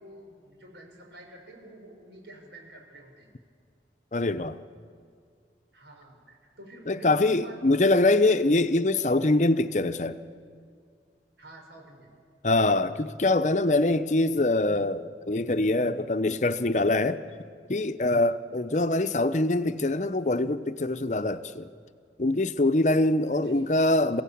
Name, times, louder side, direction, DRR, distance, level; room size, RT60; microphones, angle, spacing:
voice 1, 0.0-3.3 5.7-8.1 11.4-12.1 23.4-23.7, right 1 dB, 90° right, 5.8 m, -48 dB
voice 2, 4.1-4.6 6.9-10.2 12.4-17.2 17.7-21.7 22.2-24.2, left 2 dB, 40° left, 0.7 m, -24 dB
27.5 x 16.0 x 8.6 m
head